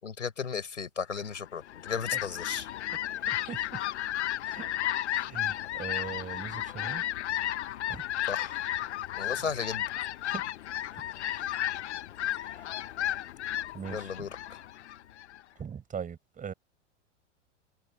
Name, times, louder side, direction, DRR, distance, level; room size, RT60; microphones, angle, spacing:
voice 1, 0.0-2.7 8.3-8.6 9.2-9.8 13.9-14.6, left 6 dB, 80° left, 6.4 m, -35 dB
Fowl, 1.5-15.4, left 13 dB, 65° left, 1.2 m, -33 dB
voice 2, 3.3-3.8 4.4-4.7 5.1-7.0 7.9-8.0 10.3-10.4 10.9-11.0 11.3-11.6 12.4-12.6 13.7-14.1 15.6-16.5, right 7 dB, 20° right, 6.0 m, -40 dB
figure-of-eight pair, 95°, 37 cm